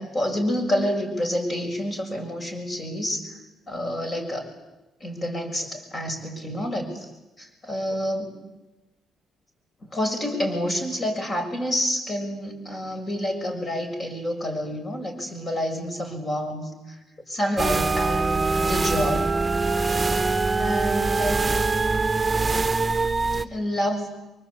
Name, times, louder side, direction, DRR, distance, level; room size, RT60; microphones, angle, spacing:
voice 1, 0.0-3.4 3.7-4.5 5.0-7.1 7.4-8.3 9.8-17.0 17.3-19.3 20.6-21.4 23.3-24.1, equal, 35° left, 4 dB, 6.4 m, -28 dB
sound 1, 17.6-23.4, right 3 dB, 20° right, 1.2 m, -23 dB
28.0 x 24.0 x 8.4 m, 1.0 s
cardioid pair, 90°, 0 cm